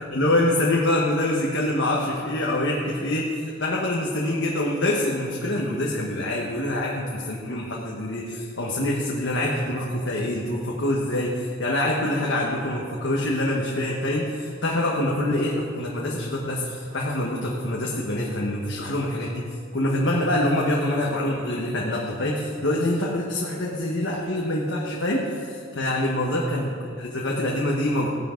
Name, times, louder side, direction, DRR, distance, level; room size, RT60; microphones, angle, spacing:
voice 1, 0.1-19.5 19.7-28.1, left 1 dB, 65° left, -3 dB, 1.3 m, -25 dB
16.0 x 11.0 x 3.9 m, 2.3 s
head